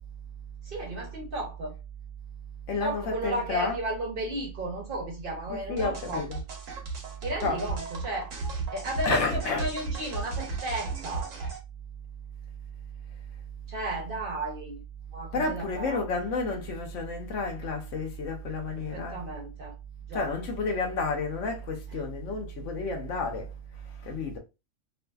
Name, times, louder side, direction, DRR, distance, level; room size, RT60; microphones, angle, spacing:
voice 1, 0.6-1.8 2.8-6.2 7.2-8.3 8.7-11.3 13.7-14.8 15.1-16.0 18.8-19.8 20.1-20.3, right 1 dB, 50° right, 0.8 m, -34 dB
voice 2, 2.7-3.8 5.5-6.4 7.4-7.6 9.1-9.6 15.3-19.2 20.1-23.5 24.0-24.4, left 3 dB, 70° left, 1.0 m, -30 dB
sound 1, 5.8-11.6, right 4 dB, 75° right, 1.1 m, -35 dB
2.5 x 2.5 x 2.2 m
omnidirectional pair, 1.4 m